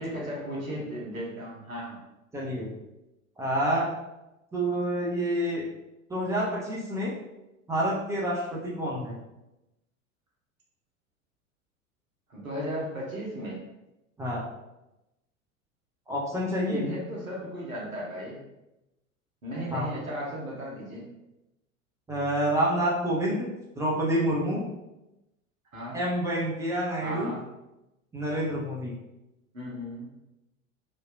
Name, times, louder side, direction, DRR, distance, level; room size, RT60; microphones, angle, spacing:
voice 1, 0.0-2.0 12.3-13.6 16.7-18.4 19.4-21.1 25.7-26.0 27.0-27.4 29.5-30.1, equal, 80° right, -4 dB, 1.1 m, -35 dB
voice 2, 2.3-2.7 3.4-3.9 4.5-5.6 6.1-7.1 7.7-9.2 14.2-14.4 16.1-16.9 19.7-19.9 22.1-23.5 23.8-24.6 25.9-27.3 28.1-29.0, equal, 10° right, -5 dB, 0.4 m, -28 dB
3.4 x 2.7 x 2.4 m, 0.94 s
figure-of-eight pair, 80°, 41 cm